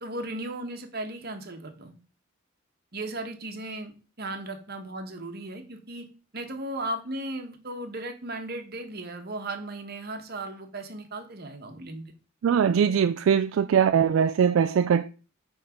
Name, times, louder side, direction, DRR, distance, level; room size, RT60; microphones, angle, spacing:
voice 1, 0.0-1.9 2.9-6.1 6.3-12.1, right 1 dB, 50° right, 1.3 m, -36 dB
voice 2, 12.4-15.1, right 7 dB, 70° right, 0.3 m, -21 dB
8.6 x 3.7 x 5.1 m
head